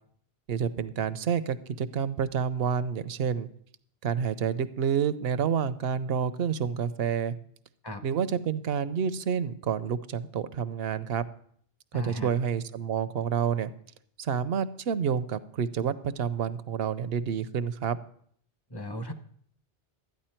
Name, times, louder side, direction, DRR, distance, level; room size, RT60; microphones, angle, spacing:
voice 1, 0.5-3.5 4.0-7.3 8.0-11.2 11.9-13.7 14.2-18.0, right 7 dB, 75° right, 14 dB, 0.8 m, -29 dB
voice 2, 11.9-12.3 18.7-19.1, equal, 25° left, 7 dB, 0.7 m, -36 dB
13.0 x 9.4 x 4.4 m, 0.63 s
omnidirectional pair, 1.0 m